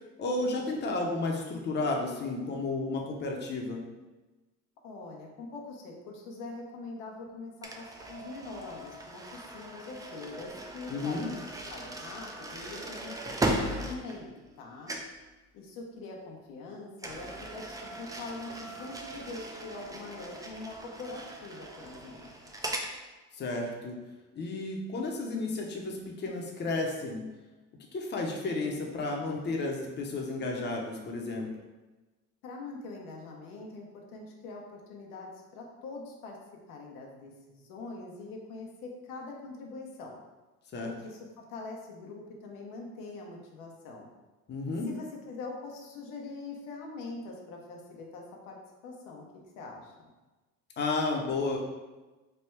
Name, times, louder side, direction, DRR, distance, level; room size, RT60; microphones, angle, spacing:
voice 1, 0.2-3.8 10.9-11.3 23.3-24.0 24.4-27.2 27.9-31.5 40.7-40.9 44.5-44.9 50.8-51.6, left 3 dB, 35° left, 0 dB, 0.7 m, -32 dB
voice 2, 4.8-14.9 15.5-22.3 32.4-36.4 36.7-40.2 41.0-44.1 44.8-49.9, left 3 dB, 90° left, 0 dB, 0.8 m, -43 dB
sound 1, 7.6-14.6 14.9-15.2 17.0-22.9, right 1 dB, 10° right, 0.4 m, -38 dB
3.3 x 2.2 x 4.4 m, 1.2 s
cardioid pair, 105°, 32 cm